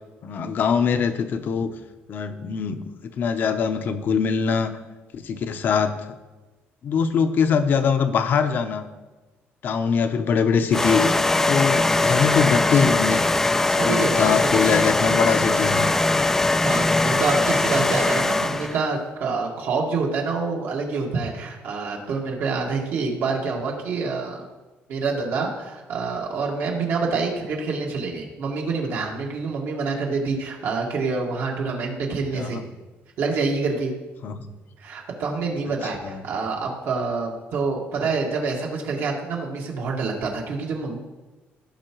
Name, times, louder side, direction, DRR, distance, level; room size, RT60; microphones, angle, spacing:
voice 1, 0.2-1.7 2.1-2.8 3.2-4.7 5.1-6.2 6.8-8.8 9.6-11.1 11.5-13.3 13.8-15.9 32.3-32.6 34.2-34.5 36.0-36.2, left 6 dB, 50° left, 9 dB, 0.7 m, -22 dB
sound 1, 10.7-18.8, left 2 dB, 10° left, 0.3 m, -21 dB
voice 2, 13.8-14.7 16.2-24.5 24.9-32.6 33.2-33.9 34.8-41.0, right 4 dB, 70° right, -1 dB, 1.8 m, -27 dB
15.0 x 5.9 x 3.0 m, 1.2 s
cardioid pair, 135°, 4 cm